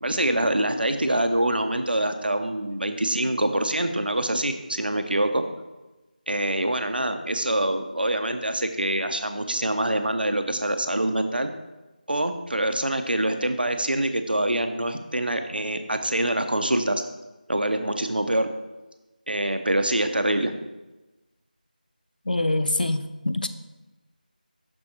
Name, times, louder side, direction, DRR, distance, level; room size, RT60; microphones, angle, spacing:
voice 1, 0.0-5.5 6.3-11.5 12.1-17.0 17.5-18.5 19.3-20.5, right 1 dB, 90° right, 8 dB, 0.7 m, -25 dB
voice 2, 22.3-23.5, left 2 dB, 70° left, 10 dB, 0.5 m, -25 dB
6.3 x 4.4 x 4.3 m, 1.1 s
figure-of-eight pair, 170°, 5 cm